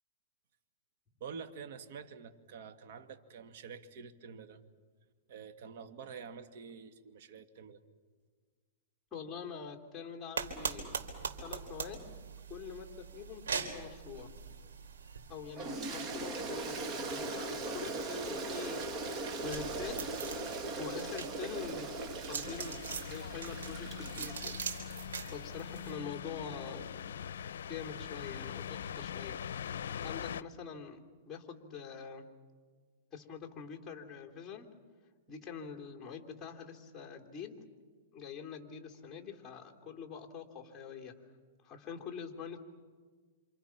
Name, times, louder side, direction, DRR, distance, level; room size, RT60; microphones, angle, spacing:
voice 1, 1.2-4.6 5.3-7.8, right 6 dB, 60° right, 7 dB, 2.0 m, -47 dB
voice 2, 9.1-11.0 11.4-12.1 12.5-14.3 15.3-18.8 19.1-20.2 20.7-22.8 23.0-24.6 24.9-25.0 25.3-26.9 27.7-29.4 30.0-31.0 31.2-32.3 33.1-34.7 35.3-37.6 38.1-41.2 41.6-42.6, left 6 dB, 15° left, 1 dB, 3.2 m, -45 dB
sound 1, 10.4-25.9, right 6 dB, 85° right, 3.8 m, -43 dB
Toilet flush, 15.6-24.9, right 3 dB, 30° right, 1.9 m, -39 dB
sound 2, 22.4-30.4, left 8 dB, 80° left, 0.7 m, -42 dB
27.5 x 27.5 x 6.0 m, 1.5 s
hypercardioid pair, 140°, 0 cm